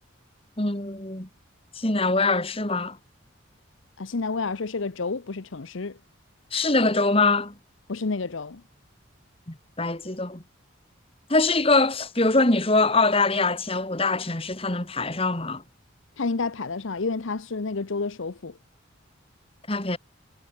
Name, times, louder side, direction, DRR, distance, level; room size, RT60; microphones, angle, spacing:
voice 1, 0.6-1.3 1.8-3.0 6.5-7.5 9.5-10.4 11.3-15.6 19.7-20.0, left 3 dB, 30° left, 2.5 m, -23 dB
voice 2, 4.0-6.0 7.9-8.6 16.2-18.6, left 4 dB, 75° left, 0.8 m, -30 dB
head